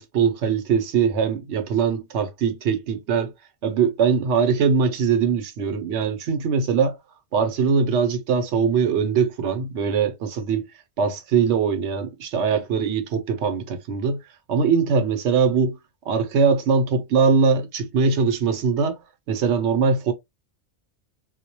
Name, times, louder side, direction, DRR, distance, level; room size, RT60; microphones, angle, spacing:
voice 1, 0.0-3.3 3.6-7.0 7.3-10.7 11.0-14.2 14.5-15.8 16.1-19.0 19.3-20.1, right 6 dB, 80° right, 0.9 m, -21 dB
2.2 x 2.1 x 2.7 m
omnidirectional pair, 1.1 m